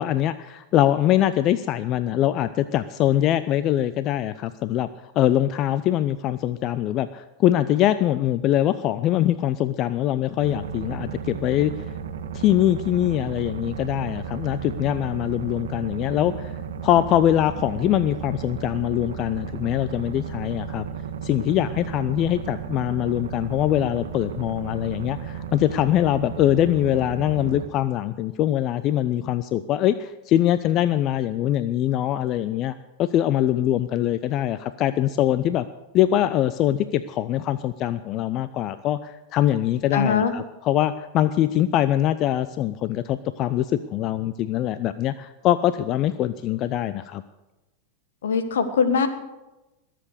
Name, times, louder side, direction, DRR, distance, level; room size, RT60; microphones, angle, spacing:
voice 1, 0.0-4.9 5.2-11.7 12.3-16.5 16.8-20.9 21.2-35.7 35.9-47.2, left 12 dB, 40° left, 14 dB, 0.5 m, -23 dB
sound 1, 10.4-27.7, right 7 dB, 70° right, 1.3 m, -34 dB
voice 2, 39.9-40.3 48.2-49.1, left 6 dB, 75° left, 10 dB, 1.5 m, -21 dB
21.0 x 7.7 x 6.7 m, 1.0 s
hypercardioid pair, 95°, 0 cm